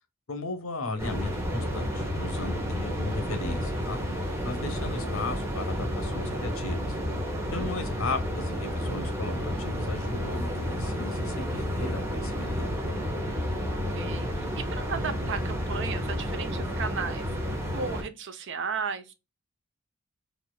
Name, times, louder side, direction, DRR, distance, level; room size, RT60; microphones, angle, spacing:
voice 1, 0.3-4.0 4.4-7.0 7.5-12.8, left 3 dB, 75° left, 0.9 m, -36 dB
sound 1, 1.0-18.0, equal, 15° right, 1.1 m, -31 dB
voice 2, 7.5-7.8 13.3-17.3 17.7-19.1, right 5 dB, 60° right, 0.6 m, -35 dB
4.2 x 2.7 x 2.2 m
head